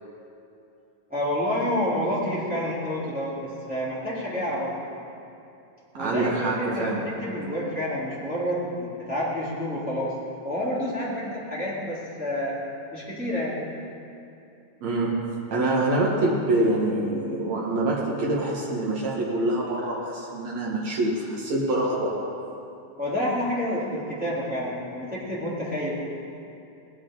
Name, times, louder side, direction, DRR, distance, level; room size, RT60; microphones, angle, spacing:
voice 1, 1.1-4.8 5.9-10.1 10.4-12.6 12.9-13.6 23.0-26.0, left 1 dB, 5° right, -9 dB, 2.1 m, -29 dB
voice 2, 5.9-7.1 14.8-22.2, right 2 dB, 85° right, -4 dB, 1.5 m, -25 dB
18.5 x 11.0 x 3.9 m, 2.8 s
omnidirectional pair, 5.5 m